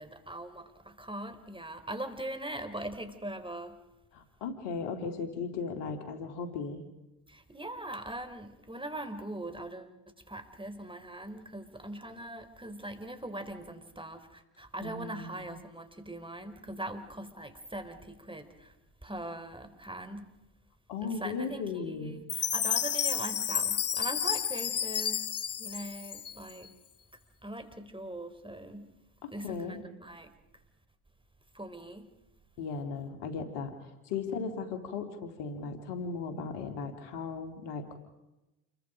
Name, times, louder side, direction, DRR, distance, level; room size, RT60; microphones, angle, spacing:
voice 1, 0.0-3.8 7.3-9.9 10.3-18.7 19.0-20.3 21.0-25.2 25.6-26.7 27.4-28.9 29.3-30.3 31.5-32.1, right 1 dB, 10° right, 8 dB, 4.4 m, -41 dB
voice 2, 4.1-6.8 14.8-15.5 20.9-22.2 29.2-29.8 32.6-37.8, left 5 dB, 80° left, 7 dB, 3.4 m, -37 dB
Chime, 22.3-26.7, left 8 dB, 35° left, 0.9 m, -31 dB
29.0 x 23.0 x 5.1 m, 0.97 s
hypercardioid pair, 55°, 42 cm